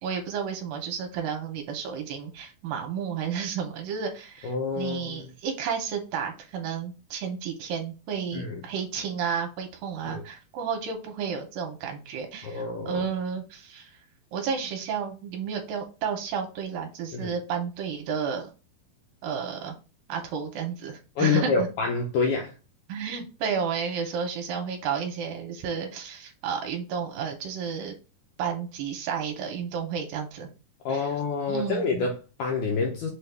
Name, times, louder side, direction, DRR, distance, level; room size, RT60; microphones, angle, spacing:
voice 1, 0.0-13.9 14.3-18.5 19.2-19.7 20.1-21.7 22.9-27.9 28.4-30.5 30.9-31.1 31.5-31.9, right 6 dB, 75° right, 2.3 m, -32 dB
voice 2, 4.4-5.3 8.3-8.6 10.1-10.2 12.4-13.0 17.1-17.3 21.2-22.5 30.9-33.1, left 4 dB, 80° left, 1.8 m, -27 dB
6.1 x 2.3 x 3.3 m
omnidirectional pair, 4.2 m